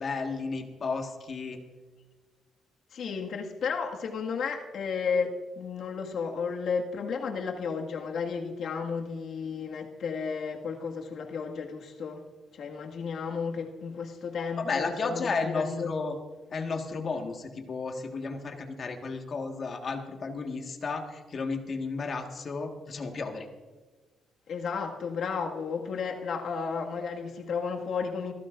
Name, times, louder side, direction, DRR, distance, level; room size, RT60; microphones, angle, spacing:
voice 1, 0.0-1.6 14.6-16.2 16.5-23.5, left 4 dB, 45° left, 4 dB, 1.7 m, -33 dB
voice 2, 2.9-12.2 12.5-15.9 24.5-28.3, left 5 dB, 65° left, 1 dB, 1.9 m, -33 dB
24.0 x 14.5 x 2.6 m, 1.3 s
cardioid pair, 90°, 0 cm